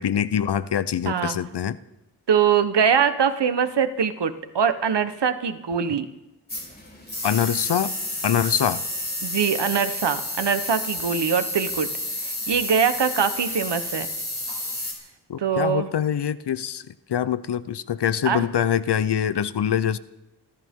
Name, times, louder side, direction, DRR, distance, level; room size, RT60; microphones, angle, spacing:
voice 1, 0.0-1.8 7.2-7.9 8.2-8.8 15.3-16.8 17.1-20.0, left 9 dB, 70° left, 16 dB, 0.7 m, -24 dB
voice 2, 1.0-1.4 2.3-6.1 9.2-11.9 12.5-14.1 15.4-15.9 18.2-18.4, right 7 dB, 80° right, 11 dB, 1.2 m, -22 dB
sound 1, 6.5-14.9, left 1 dB, 25° left, 4.9 m, -31 dB
28.0 x 13.5 x 3.7 m, 0.96 s
wide cardioid pair, 105°, 42 cm